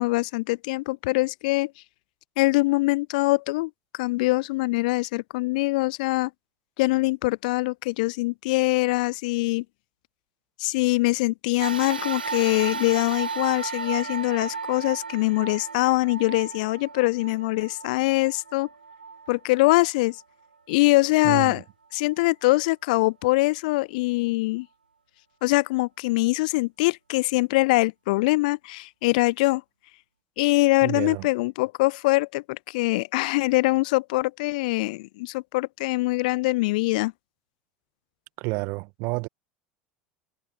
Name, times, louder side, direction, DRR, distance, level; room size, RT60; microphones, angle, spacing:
voice 1, 0.0-1.7 2.4-6.3 6.8-9.6 10.6-18.7 19.3-20.2 20.7-21.6 21.9-24.7 25.4-29.6 30.4-37.1, left 22 dB, 60° left, 0.4 m, -23 dB
sound 1, 11.6-20.2 20.8-20.9 22.0-22.1, right 5 dB, 85° right, 0.4 m, -35 dB
voice 2, 21.2-21.6 30.8-31.3 38.4-39.3, right 31 dB, 55° right, 1.8 m, -30 dB
figure-of-eight pair, 75°, 5 cm